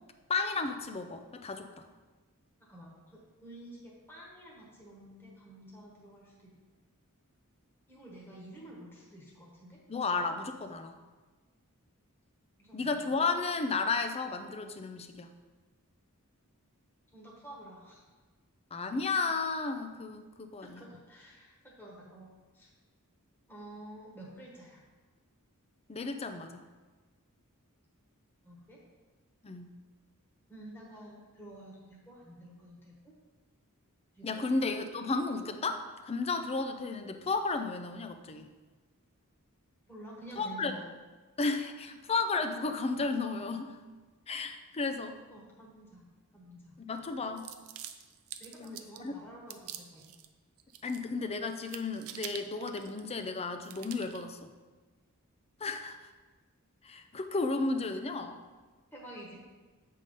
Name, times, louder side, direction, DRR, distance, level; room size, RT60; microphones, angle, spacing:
voice 1, 0.3-1.9 9.9-10.9 12.7-15.3 18.7-20.8 25.9-26.6 29.4-29.7 34.2-38.5 40.4-40.7 41.4-43.8 44.3-45.2 46.8-47.5 48.6-48.7 49.0-49.1 50.8-54.5 55.6-56.0 56.8-58.4, left 3 dB, 30° left, 8 dB, 0.5 m, -33 dB
voice 2, 2.6-6.5 7.9-9.8 12.6-13.1 17.1-18.0 20.6-22.7 23.5-24.8 28.4-28.8 30.5-33.1 34.1-34.5 39.9-40.9 45.3-46.8 48.4-50.1 58.9-59.4, right 1 dB, 10° left, -4 dB, 1.3 m, -50 dB
sound 1, 47.4-49.1 49.5-50.3 50.6-51.2 51.5-53.3 53.6-54.2, right 10 dB, 70° right, 0.5 m, -46 dB
7.9 x 3.7 x 5.3 m, 1.3 s
head